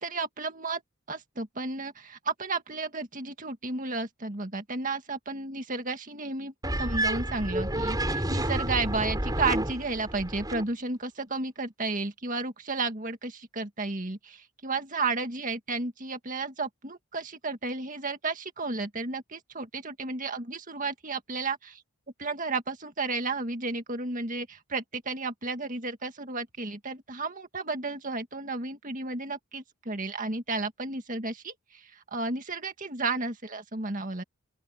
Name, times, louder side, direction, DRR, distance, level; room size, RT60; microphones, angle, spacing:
voice 1, 0.0-0.8 1.1-21.8 22.2-34.2, right 3 dB, 40° right, 2.0 m, -33 dB
sound 1, 6.6-10.6, right 1 dB, 20° right, 6.2 m, -30 dB
open air
head